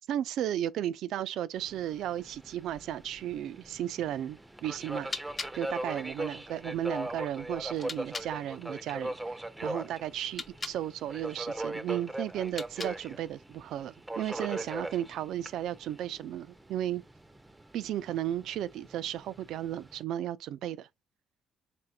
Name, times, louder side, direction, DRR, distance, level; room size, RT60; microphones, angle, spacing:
voice 1, 0.1-5.1 5.5-9.4 9.6-17.0 17.7-20.9, right 11 dB, 80° right, 0.3 m, -34 dB
Subway metro underground, 1.6-20.0, right 1 dB, 10° right, 0.5 m, -40 dB
sound 1, 5.0-8.3 10.2-10.8 12.4-13.2, left 3 dB, 30° left, 0.6 m, -43 dB
4.3 x 3.4 x 2.2 m
cardioid pair, 90°, 0 cm